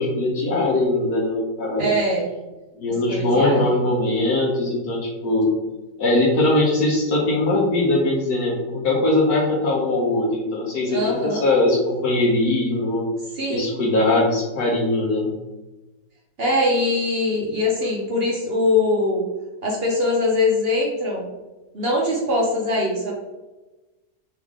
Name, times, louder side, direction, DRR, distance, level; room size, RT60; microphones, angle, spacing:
voice 1, 0.0-1.9 2.7-5.5 6.0-13.1 13.5-15.3, left 2 dB, 65° left, -2 dB, 1.1 m, -21 dB
voice 2, 1.8-2.3 3.1-3.6 10.9-11.4 13.3-13.7 16.4-19.2 19.6-21.2 21.7-23.1, left 2 dB, 55° right, -3 dB, 0.6 m, -22 dB
3.6 x 3.5 x 3.5 m, 1.1 s
omnidirectional pair, 2.0 m